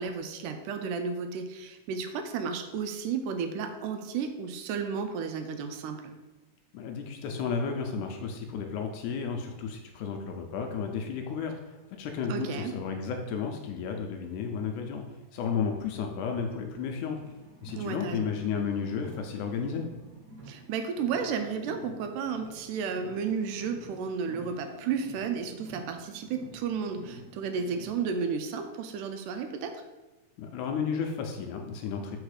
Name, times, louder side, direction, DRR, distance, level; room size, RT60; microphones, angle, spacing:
voice 1, 0.0-6.1 12.3-12.8 17.8-18.3 20.5-29.8, right 6 dB, 80° right, 6 dB, 2.0 m, -33 dB
voice 2, 6.7-17.2 17.6-19.8 30.4-32.2, left 6 dB, 80° left, 3 dB, 1.9 m, -33 dB
Car, 17.0-28.1, right 1 dB, 60° right, 1.8 m, -49 dB
4.9 x 4.4 x 4.8 m, 1.1 s
omnidirectional pair, 3.8 m